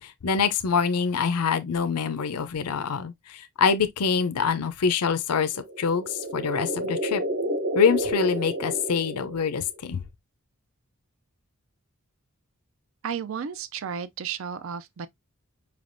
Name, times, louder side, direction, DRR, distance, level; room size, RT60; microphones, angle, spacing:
voice 1, 0.0-7.2 7.7-10.0, left 6 dB, 90° left, 0.5 m, -25 dB
sound 1, 5.5-9.8, right 1 dB, 45° right, 0.8 m, -30 dB
voice 2, 13.0-15.1, right 7 dB, 60° right, 0.4 m, -33 dB
5.0 x 3.3 x 2.5 m
head